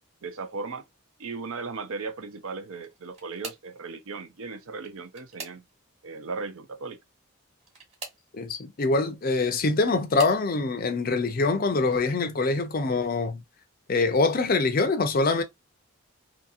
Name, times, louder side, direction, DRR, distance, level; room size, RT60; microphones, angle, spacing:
voice 1, 0.2-0.9 1.2-5.6 6.0-7.0, right 4 dB, 70° right, 0.5 m, -37 dB
sound 1, 2.7-3.8 4.7-6.0 7.6-8.3 9.4-10.5 11.2-11.6 12.0-12.1 13.4-13.5, right 4 dB, 30° right, 1.1 m, -44 dB
voice 2, 8.3-13.4 13.9-15.4, left 3 dB, 40° left, 0.5 m, -24 dB
2.8 x 2.7 x 2.4 m
head